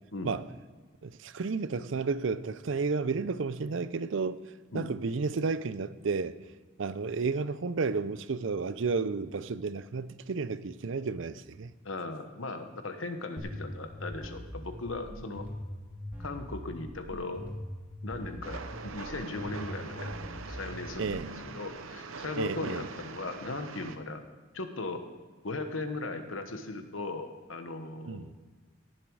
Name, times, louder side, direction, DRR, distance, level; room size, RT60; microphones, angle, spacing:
voice 1, 1.0-4.4 4.7-6.4 6.8-11.7 21.0-21.3 22.4-22.8 28.1-28.3, right 4 dB, 70° right, 0.5 m, -32 dB
voice 2, 11.8-15.5 16.2-17.5 18.0-20.1 20.5-24.2 24.5-25.1 25.4-28.3, left 2 dB, 80° left, 1.2 m, -38 dB
sound 1, 13.4-21.4, left 1 dB, 10° right, 2.2 m, -42 dB
Train, 18.4-24.0, right 4 dB, 85° right, 0.9 m, -43 dB
18.0 x 7.4 x 4.8 m
head